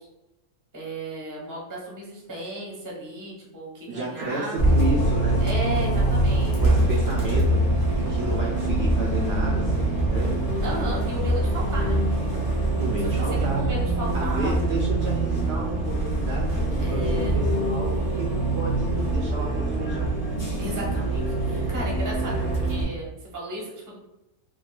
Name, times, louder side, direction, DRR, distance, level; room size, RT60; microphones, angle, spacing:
voice 1, 0.7-4.6 5.4-6.8 10.6-12.0 13.3-14.5 16.8-17.4 20.6-24.0, right 1 dB, 20° right, -4 dB, 0.6 m, -34 dB
voice 2, 3.9-5.4 6.6-10.3 12.8-13.6 14.1-17.9 18.1-20.1, right 2 dB, 65° right, -3 dB, 0.7 m, -32 dB
Bus, 4.6-22.8, right 1 dB, 20° left, 0.6 m, -24 dB
3.6 x 2.4 x 2.3 m, 0.92 s
omnidirectional pair, 1.3 m